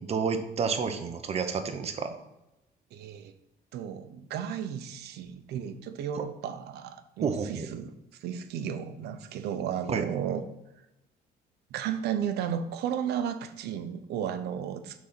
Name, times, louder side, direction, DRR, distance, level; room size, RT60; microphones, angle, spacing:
voice 1, 0.1-2.1 7.2-7.7 9.9-10.0, right 5 dB, 40° right, 7 dB, 0.9 m, -30 dB
voice 2, 2.9-3.3 3.7-7.9 8.2-10.4 11.7-15.0, right 9 dB, 75° right, 10 dB, 0.8 m, -34 dB
6.1 x 4.1 x 6.0 m, 0.92 s
cardioid pair, 110°, 17 cm